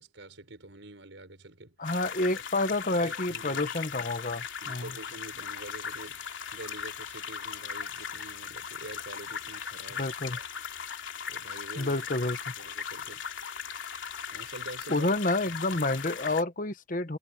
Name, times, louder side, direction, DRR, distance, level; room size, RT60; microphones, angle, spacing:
voice 1, 0.0-1.9 2.3-2.4 3.0-3.6 4.6-10.4 11.3-12.1 12.6-13.3 14.3-15.1 15.7-16.0, right 2 dB, 85° right, 4.9 m, -46 dB
sound 1, 1.8-16.4, left 7 dB, 85° left, 3.2 m, -38 dB
voice 2, 1.8-4.9 10.0-10.4 11.8-12.5 14.9-17.2, left 2 dB, 45° left, 1.2 m, -29 dB
head